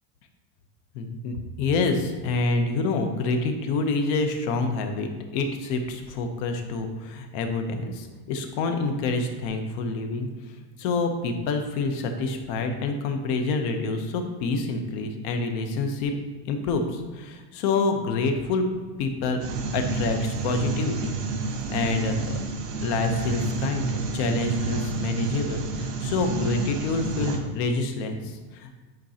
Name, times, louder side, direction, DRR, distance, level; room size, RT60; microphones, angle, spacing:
voice 1, 0.9-16.1 16.4-18.7 19.0-19.5 19.7-21.2 21.7-22.4 22.8-28.8, left 3 dB, 50° left, 5 dB, 0.9 m, -27 dB
sound 1, 19.4-27.4, right 3 dB, 70° right, 1.3 m, -29 dB
9.0 x 4.5 x 2.9 m, 1.4 s
supercardioid pair, 155°, 47 cm